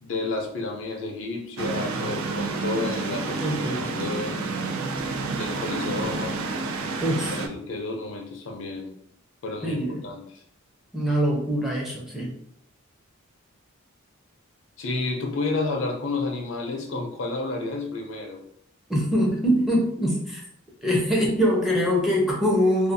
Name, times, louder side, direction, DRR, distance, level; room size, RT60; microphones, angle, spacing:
voice 1, 0.0-4.4 4.9-6.5 7.4-8.9 9.4-10.4 14.8-18.4, left 3 dB, 60° left, 2 dB, 0.5 m, -31 dB
sound 1, 1.6-7.5, right 3 dB, 75° right, 0.4 m, -29 dB
voice 2, 3.4-3.9 7.0-7.4 9.6-10.1 10.9-12.3 18.9-20.4 20.8-22.9, equal, ahead, -3 dB, 0.4 m, -23 dB
2.5 x 2.3 x 2.6 m, 0.68 s
head